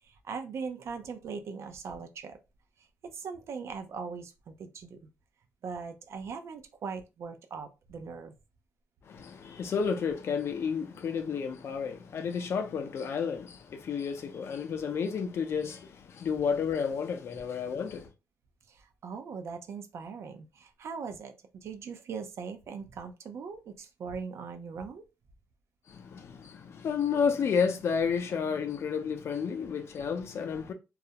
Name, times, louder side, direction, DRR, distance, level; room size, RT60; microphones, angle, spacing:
voice 1, 0.0-2.4 3.0-5.1 5.6-8.3 18.7-25.0, right 5 dB, 60° right, 0.4 m, -40 dB
voice 2, 9.1-18.1 25.9-30.7, left 6 dB, 55° left, 0.5 m, -31 dB
2.3 x 2.0 x 2.7 m
cardioid pair, 115°, 5 cm